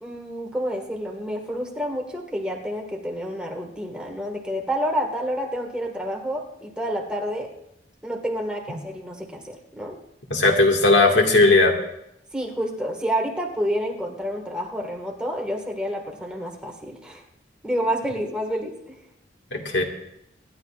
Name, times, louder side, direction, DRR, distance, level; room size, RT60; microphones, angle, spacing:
voice 1, 0.0-7.5 8.0-10.0 12.3-17.2 17.6-18.9, equal, 5° right, 0 dB, 1.6 m, -29 dB
voice 2, 10.3-11.8 19.5-19.8, left 2 dB, 80° left, 2 dB, 1.9 m, -17 dB
25.5 x 11.0 x 2.4 m, 0.81 s
head